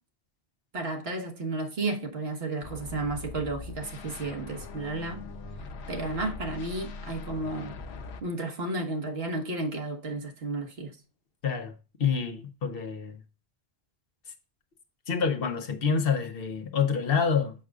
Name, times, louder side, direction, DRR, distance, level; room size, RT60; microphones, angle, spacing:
voice 1, 0.7-5.2 5.9-7.7 8.2-11.0, right 2 dB, 70° right, 1.5 m, -32 dB
sound 1, 2.6-8.2, left 4 dB, 85° left, 1.1 m, -41 dB
voice 2, 11.4-11.7 12.0-13.2 15.1-17.5, left 6 dB, 65° left, 1.1 m, -27 dB
7.4 x 6.2 x 2.4 m
omnidirectional pair, 1.1 m